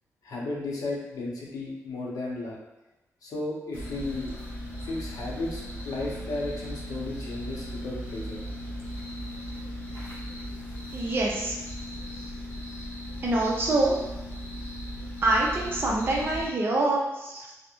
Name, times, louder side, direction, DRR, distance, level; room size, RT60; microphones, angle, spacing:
voice 1, 0.2-2.6 3.2-4.3 4.8-8.4, left 2 dB, 85° left, -3 dB, 0.6 m, -34 dB
sound 1, 3.7-16.5, equal, 30° left, 0.8 m, -37 dB
voice 2, 10.9-11.5 13.2-14.0 15.2-17.5, right 2 dB, 40° right, -3 dB, 0.5 m, -25 dB
2.3 x 2.0 x 2.9 m, 1.0 s
wide cardioid pair, 165°, 6 cm